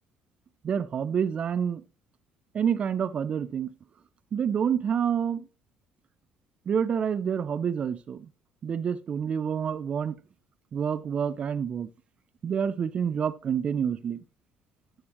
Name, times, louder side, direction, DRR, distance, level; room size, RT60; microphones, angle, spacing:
voice 1, 0.6-1.8 2.5-3.7 4.3-5.4 6.7-8.3 8.6-10.2 10.7-11.9 12.4-14.2, right 7 dB, 45° right, 0.6 m, -28 dB
9.6 x 8.0 x 3.0 m
cardioid pair, 90°, 3 cm